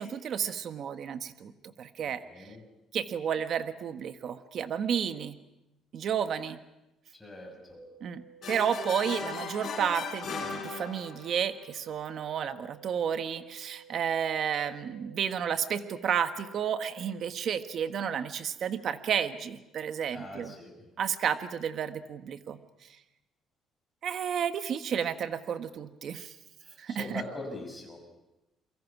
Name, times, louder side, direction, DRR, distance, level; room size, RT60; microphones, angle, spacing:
voice 1, 0.0-1.5 1.8-2.5 2.9-5.4 5.9-6.6 8.0-8.2 8.5-20.5 21.0-22.6 24.0-26.3 26.8-27.2, right 8 dB, 50° right, 9 dB, 1.4 m, -31 dB
voice 2, 2.0-2.6 7.1-7.8 20.1-20.8 26.6-28.0, left 2 dB, 10° left, 1 dB, 6.8 m, -42 dB
sound 1, 7.7-17.7, right 7 dB, 15° right, 3.9 m, -55 dB
sound 2, 8.4-11.4, left 5 dB, 45° left, 7.4 m, -37 dB
29.0 x 23.5 x 6.1 m, 0.95 s
cardioid pair, 145°, 0 cm